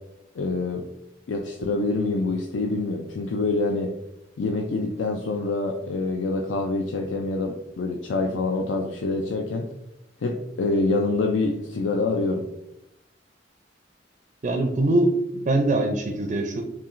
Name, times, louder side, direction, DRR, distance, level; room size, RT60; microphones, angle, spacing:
voice 1, 0.4-0.8 1.3-3.9 4.4-9.7 10.2-12.5, left 3 dB, 80° left, 2 dB, 0.4 m, -26 dB
voice 2, 14.4-16.6, right 2 dB, 40° right, 4 dB, 0.4 m, -23 dB
5.6 x 2.3 x 2.5 m, 0.84 s
head